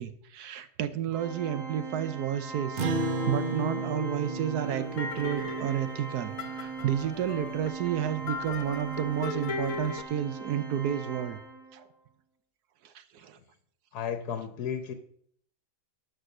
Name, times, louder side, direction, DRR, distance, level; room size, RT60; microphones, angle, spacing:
voice 1, 0.0-11.4 11.7-11.9 12.8-13.4, right 9 dB, 80° right, 12 dB, 1.3 m, -31 dB
Organ, 1.1-11.8, right 4 dB, ahead, 2.0 m, -40 dB
Acoustic guitar, 2.8-7.5, right 3 dB, 40° right, 0.9 m, -34 dB
sound 1, 4.6-10.0, left 5 dB, 60° left, 1.2 m, -38 dB
voice 2, 13.9-14.9, left 7 dB, 80° left, 8 dB, 1.4 m, -33 dB
12.5 x 5.1 x 6.4 m, 0.65 s
omnidirectional pair, 1.7 m